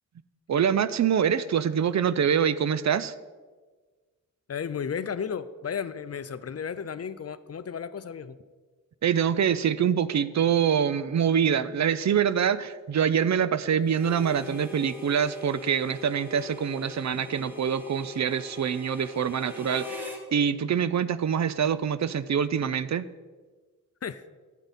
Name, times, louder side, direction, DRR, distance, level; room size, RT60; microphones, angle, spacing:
voice 1, 0.5-3.1 9.0-23.1, right 8 dB, 55° right, 15 dB, 0.5 m, -25 dB
voice 2, 4.5-8.4 24.0-24.2, left 7 dB, 50° left, 13 dB, 0.5 m, -33 dB
Harmonica, 13.9-20.2, left 4 dB, 5° right, 1.8 m, -41 dB
11.5 x 8.3 x 4.1 m, 1.4 s
wide cardioid pair, 95°, 33 cm